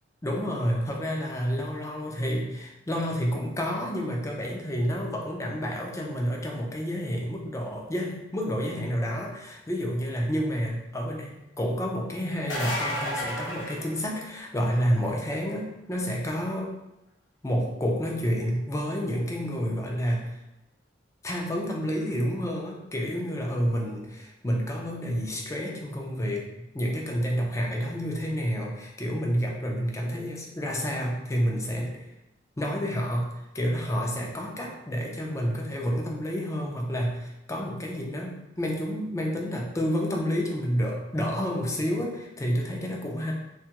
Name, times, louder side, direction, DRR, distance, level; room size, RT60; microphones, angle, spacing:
voice 1, 0.2-16.7 17.4-20.3 21.2-26.5 26.7-32.0 32.6-43.3, equal, 15° left, -1 dB, 0.4 m, -29 dB
sound 1, 12.3-14.6 20.1-20.2 22.0-22.1, left 1 dB, 70° left, 0.7 m, -32 dB
2.8 x 2.3 x 2.8 m, 0.93 s
head